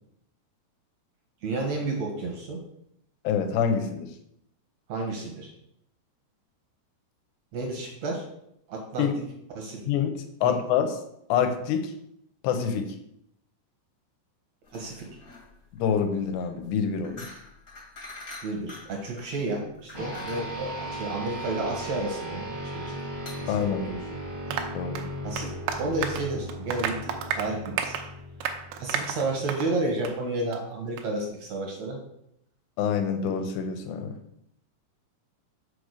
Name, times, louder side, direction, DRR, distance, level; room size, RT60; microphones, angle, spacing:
voice 1, 1.4-2.6 4.9-5.5 7.5-8.2 8.7-9.1 9.6-9.8 10.4-10.6 14.7-15.1 18.4-22.9 23.4-24.2 24.5-24.6 25.2-25.5 25.8-27.9 28.8-32.0, right 2 dB, 60° right, 0 dB, 1.9 m, -31 dB
voice 2, 3.2-4.1 9.0-9.1 9.9-11.0 11.3-11.9 12.4-13.0 15.8-17.3 23.5-23.8 24.7-25.0 32.8-34.2, left 7 dB, 80° left, 6 dB, 3.0 m, -26 dB
sound 1, 14.6-24.6, left 2 dB, 35° left, 1.4 m, -47 dB
sound 2, 19.9-29.6, equal, 25° right, 1.0 m, -37 dB
Applause, 24.5-29.7 30.0-30.2 30.5-30.6 31.0-31.1, right 8 dB, 80° right, 3.0 m, -33 dB
6.8 x 5.0 x 6.6 m, 0.76 s
omnidirectional pair, 5.0 m